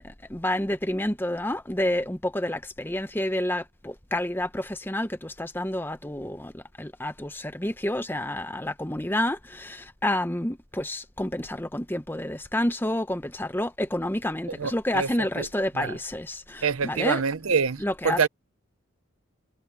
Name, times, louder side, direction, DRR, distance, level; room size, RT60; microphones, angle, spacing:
voice 1, 0.0-17.2 17.8-18.3, left 1 dB, 10° left, 0.9 m, -29 dB
voice 2, 14.6-15.1 15.4-15.5 15.8-15.9 16.6-18.3, right 6 dB, 80° right, 0.8 m, -25 dB
head